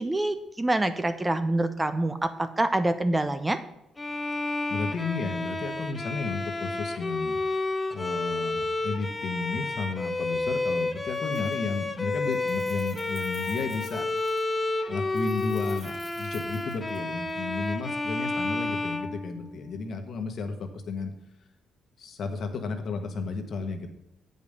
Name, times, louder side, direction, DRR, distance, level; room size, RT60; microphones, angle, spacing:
voice 1, 0.0-3.6, right 2 dB, 15° right, 10 dB, 0.7 m, -26 dB
Bowed string instrument, 4.0-19.8, left 2 dB, 20° left, 0.8 m, -31 dB
voice 2, 4.7-7.4 7.9-14.1 14.9-21.1 22.0-23.9, left 4 dB, 60° left, 6 dB, 1.3 m, -33 dB
Keys jangling, 10.7-10.8 11.1-11.9 12.1-14.5 15.1-17.3, right 3 dB, 85° right, 3.5 m, -51 dB
8.0 x 5.4 x 6.7 m, 0.86 s
cardioid pair, 90°, 0 cm